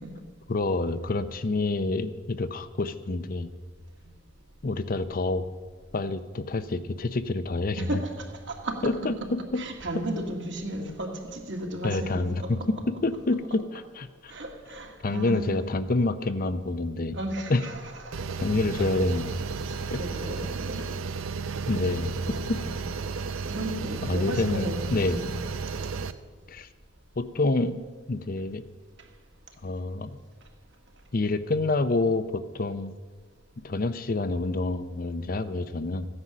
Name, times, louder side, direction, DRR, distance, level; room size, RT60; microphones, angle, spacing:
voice 1, 0.5-3.5 4.6-5.4 5.9-7.9 8.8-9.6 11.8-12.4 13.0-14.3 15.0-17.2 17.5-17.6 18.4-19.3 19.9-20.0 21.7-22.1 24.0-25.2 26.5-26.7 27.2-27.8 28.1-28.6 29.6-30.2 31.1-32.3 32.5-32.9 33.6-36.1, left 2 dB, 45° left, 0.6 m, -27 dB
voice 2, 7.8-9.0 9.6-12.7 14.3-15.7 17.1-18.4 18.8-19.2 19.6-20.9 21.5-21.6 22.2-22.8 23.5-25.3, right 1 dB, 60° right, 1.9 m, -35 dB
sound 1, 18.1-26.1, right 4 dB, 90° right, 0.6 m, -33 dB
14.5 x 9.7 x 6.2 m
head